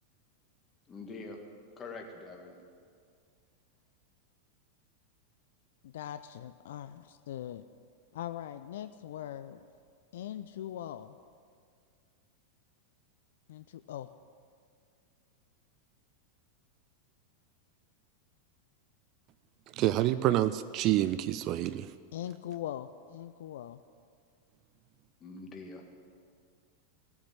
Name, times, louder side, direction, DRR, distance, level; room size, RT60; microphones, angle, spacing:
voice 1, 0.9-1.4 1.8-2.6 25.2-25.8, left 3 dB, 25° left, 2 dB, 2.0 m, -44 dB
voice 2, 5.8-7.6 8.1-9.6 10.1-11.2 13.5-14.1 22.1-23.8, left 11 dB, 55° left, 11 dB, 0.4 m, -41 dB
voice 3, 19.7-21.9, right 14 dB, 40° right, 14 dB, 0.4 m, -27 dB
17.0 x 7.3 x 9.0 m, 2.2 s
figure-of-eight pair, 90°, 0 cm